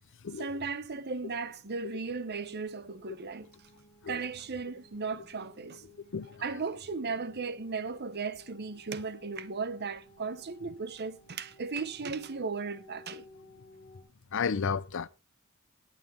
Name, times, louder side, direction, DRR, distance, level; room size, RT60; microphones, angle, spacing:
voice 1, 0.4-3.5 4.1-5.8 6.4-13.3, right 4 dB, 50° right, 1.0 m, -36 dB
sound 1, 1.7-14.0, left 2 dB, 10° left, 6.9 m, -57 dB
voice 2, 14.3-15.1, left 5 dB, 65° left, 0.6 m, -32 dB
18.0 x 9.0 x 3.4 m
head